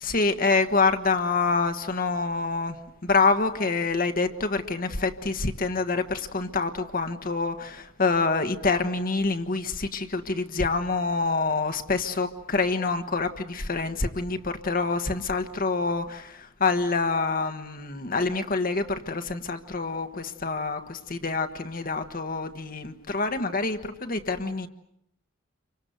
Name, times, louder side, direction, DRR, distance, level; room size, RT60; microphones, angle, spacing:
voice 1, 0.0-24.7, left 3 dB, 45° left, 1.4 m, -26 dB
29.0 x 25.0 x 8.0 m
head